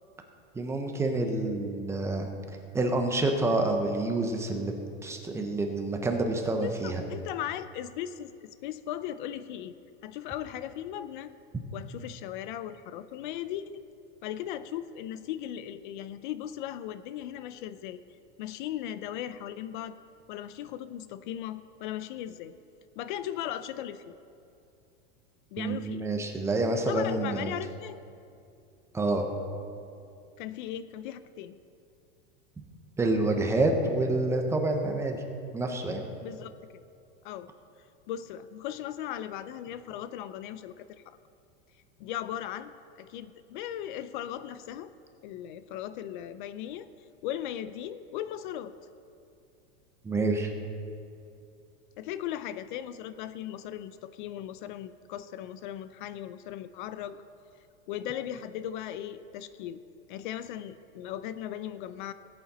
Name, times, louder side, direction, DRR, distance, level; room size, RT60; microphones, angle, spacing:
voice 1, 0.5-2.3 2.7-4.7 5.0-7.0 25.6-27.5 28.9-29.3 33.0-35.2 35.5-36.0 50.0-50.5, right 2 dB, 10° right, 3 dB, 0.8 m, -28 dB
voice 2, 6.6-9.7 10.0-11.3 11.7-13.9 14.2-18.0 18.4-20.0 20.3-22.5 23.0-24.1 25.5-26.1 26.9-28.0 30.4-31.6 36.2-36.5 37.2-37.5 38.1-41.2 42.0-42.7 43.0-44.9 45.2-46.9 47.2-48.7 52.0-57.2 57.9-59.8 60.1-62.1, left 11 dB, 55° left, 13 dB, 0.5 m, -37 dB
17.5 x 8.7 x 4.2 m, 2.5 s
supercardioid pair, 160°, 30 cm